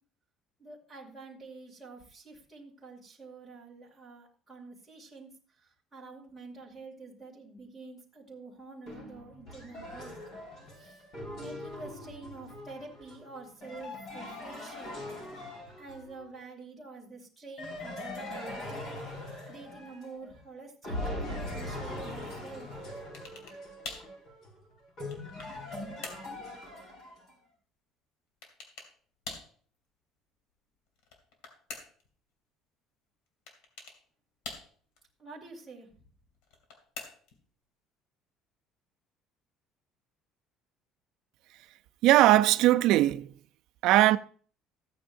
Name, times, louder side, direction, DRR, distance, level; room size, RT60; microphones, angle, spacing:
voice 1, 0.6-10.1 10.7-11.1 11.3-15.0 15.8-18.6 19.5-22.7 35.2-36.0, right 3 dB, ahead, 2.6 m, -48 dB
sound 1, 8.9-16.3 17.6-20.4 20.8-27.3, left 1 dB, 50° left, 5.4 m, -41 dB
sound 2, 23.1-23.6 23.8-24.1 24.8-25.6 26.0-26.3 28.4-28.9 29.2-29.5 31.0-32.1 33.5-34.0 34.4-35.0 36.4-37.4, left 4 dB, 90° left, 2.7 m, -44 dB
voice 2, 42.0-43.3 43.8-44.2, right 15 dB, 65° right, 0.5 m, -20 dB
14.5 x 9.2 x 2.6 m
cardioid pair, 170°, 0 cm